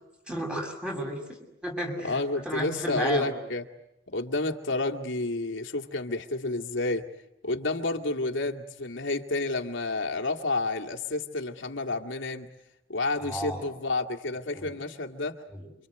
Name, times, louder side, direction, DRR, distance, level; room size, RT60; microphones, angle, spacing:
voice 1, 0.3-3.3 13.2-13.7 14.5-14.8 15.5-15.6, equal, 5° right, 1 dB, 7.2 m, -33 dB
voice 2, 2.0-3.6 4.1-7.1 7.4-12.5 12.9-15.4, left 2 dB, 85° left, 1 dB, 2.2 m, -30 dB
28.5 x 26.0 x 8.1 m, 0.89 s
head